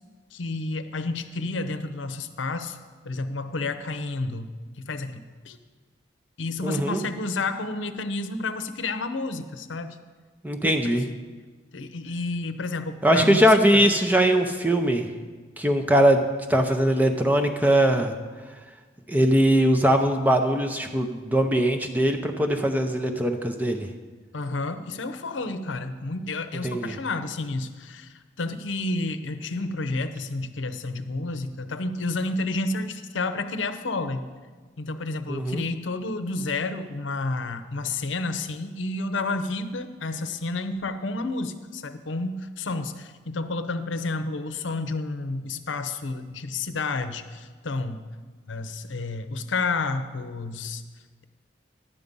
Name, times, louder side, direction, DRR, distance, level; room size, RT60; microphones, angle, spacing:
voice 1, 0.3-2.8 3.0-5.6 6.4-10.0 10.8-10.9 11.7-13.8 24.3-34.3 34.8-48.0 48.5-50.8, left 3 dB, 90° left, 10 dB, 0.7 m, -30 dB
voice 2, 6.6-7.0 10.4-11.1 13.0-15.1 15.6-16.2 16.5-18.1 19.1-23.9 26.6-26.9 35.3-35.6, right 1 dB, 10° right, 4 dB, 0.6 m, -21 dB
11.0 x 8.4 x 5.3 m, 1.4 s
head